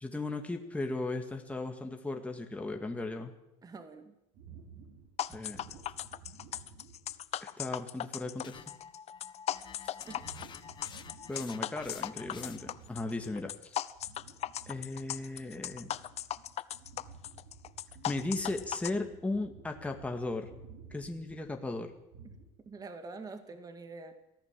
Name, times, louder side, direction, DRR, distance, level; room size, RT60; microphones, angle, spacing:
voice 1, 0.0-3.3 5.3-5.6 7.4-8.6 11.3-13.8 14.7-15.9 18.1-20.5 20.9-21.9, left 2 dB, 10° left, 4 dB, 2.0 m, -36 dB
voice 2, 3.6-4.1 10.0-10.3 22.7-24.1, right 3 dB, 25° right, 8 dB, 2.1 m, -45 dB
sound 1, 4.3-7.4 7.9-8.0 8.4-8.7 10.2-11.6 11.8-13.6 13.9-22.5, right 4 dB, 85° right, 7.1 m, -54 dB
sound 2, 5.2-18.9, left 12 dB, 50° left, 0.8 m, -38 dB
sound 3, 8.4-12.8, left 7 dB, 35° left, 1.1 m, -50 dB
23.0 x 15.0 x 7.5 m, 0.87 s
cardioid pair, 120°, 14 cm